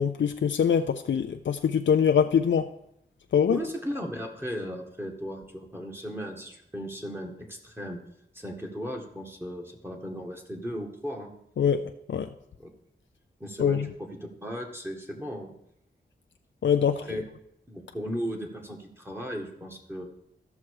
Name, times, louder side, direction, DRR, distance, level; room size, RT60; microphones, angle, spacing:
voice 1, 0.0-2.7 3.3-3.6 11.6-12.3 13.6-13.9 16.6-17.0, left 7 dB, 75° left, 7 dB, 0.5 m, -23 dB
voice 2, 3.5-8.0 8.3-11.3 12.6-12.7 13.4-14.1 14.4-15.5 16.8-17.2 17.7-20.1, equal, 10° right, 1 dB, 1.7 m, -36 dB
14.0 x 6.1 x 4.8 m, 0.76 s
wide cardioid pair, 85°, 19 cm